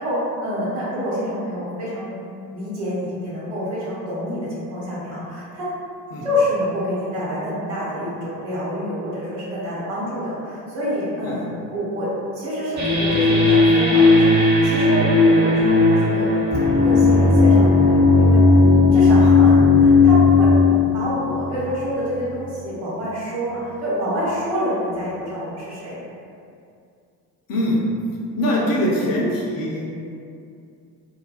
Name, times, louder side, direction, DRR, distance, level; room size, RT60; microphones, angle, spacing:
voice 1, 0.0-2.1 2.5-5.7 6.2-16.3 16.8-18.6 18.9-20.5 20.9-26.0, equal, 65° right, -8 dB, 1.0 m, -27 dB
sound 1, 12.8-22.1, left 3 dB, 35° right, 0.9 m, -15 dB
voice 2, 28.4-29.9, equal, 45° left, -4 dB, 0.6 m, -22 dB
2.6 x 2.2 x 2.4 m, 2.4 s
figure-of-eight pair, 50°, 50 cm